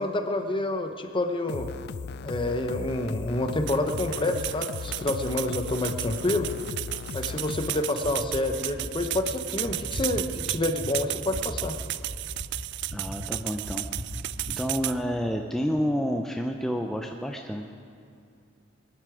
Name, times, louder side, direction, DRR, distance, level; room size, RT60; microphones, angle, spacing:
voice 1, 0.0-1.7 2.2-6.5 7.1-11.8, left 2 dB, 25° left, 6 dB, 0.9 m, -28 dB
sound 1, 1.5-7.9, left 5 dB, 55° left, 0.4 m, -37 dB
sound 2, 3.7-15.0, right 16 dB, 60° right, 0.3 m, -34 dB
sound 3, 8.0-8.5 8.8-9.2 9.6-10.1 10.5-10.9 11.3-11.7 12.1-12.5 12.9-13.3 13.6-14.1 14.4-14.6, equal, 75° right, 2.4 m, -37 dB
voice 2, 12.9-13.8 14.6-17.7, equal, ahead, 2 dB, 0.5 m, -29 dB
21.5 x 11.0 x 4.9 m, 2.5 s
head